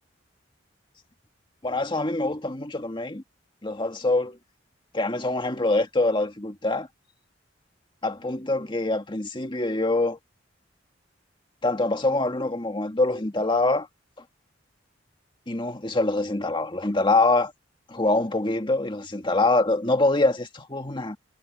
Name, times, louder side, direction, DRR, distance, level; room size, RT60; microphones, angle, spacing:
voice 1, 1.6-3.2 3.6-4.4 4.9-6.9 8.0-10.2 11.6-13.9 15.5-17.5 17.9-21.2, left 2 dB, 25° left, 1.9 m, -24 dB
head